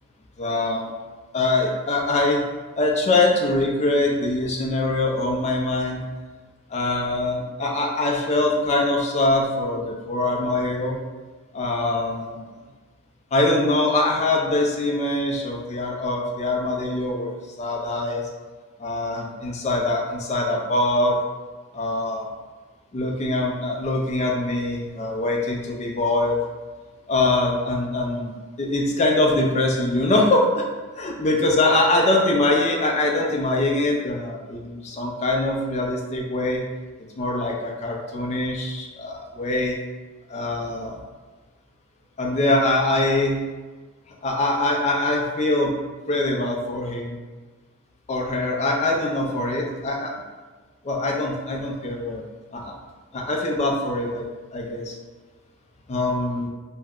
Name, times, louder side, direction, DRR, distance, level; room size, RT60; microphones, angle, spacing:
voice 1, 0.4-0.9 1.3-2.4 2.8-6.0 6.7-11.0 11.5-12.4 13.3-18.3 18.8-21.2 21.7-22.3 22.9-26.4 27.1-28.3 28.6-30.6 31.0-36.6 37.2-39.8 40.3-41.0 42.2-43.4 44.2-45.7 46.1-47.2 48.1-50.1 50.8-52.2 52.5-52.7 53.1-55.0 55.9-56.5, left 2 dB, 30° left, 0 dB, 0.4 m, -23 dB
2.3 x 2.1 x 3.5 m, 1.3 s
head